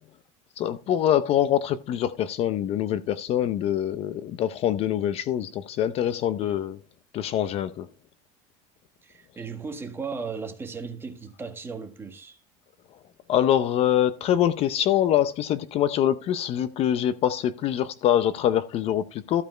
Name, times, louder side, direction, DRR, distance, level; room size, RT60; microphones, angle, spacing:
voice 1, 0.6-6.8 7.1-7.9 13.3-19.4, left 11 dB, 40° left, 0.6 m, -24 dB
voice 2, 9.0-12.4, right 5 dB, 15° right, 1.5 m, -36 dB
14.5 x 5.2 x 4.4 m
cardioid pair, 150°, 16 cm